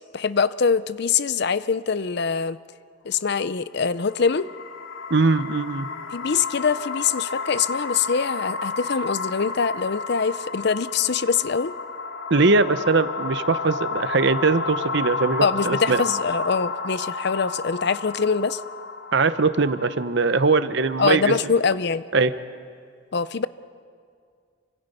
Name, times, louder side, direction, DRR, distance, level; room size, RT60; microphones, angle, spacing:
voice 1, 0.1-2.6 3.1-4.5 6.1-11.7 15.4-18.6 21.0-22.0 23.1-23.5, left 5 dB, 50° left, 15 dB, 0.5 m, -23 dB
sound 1, 3.9-21.1, left 4 dB, 80° left, 2.2 m, -32 dB
voice 2, 5.1-5.9 12.3-16.0 19.1-21.3 22.1-22.3, right 3 dB, 55° right, 12 dB, 0.8 m, -21 dB
29.5 x 25.0 x 5.5 m, 2.2 s
head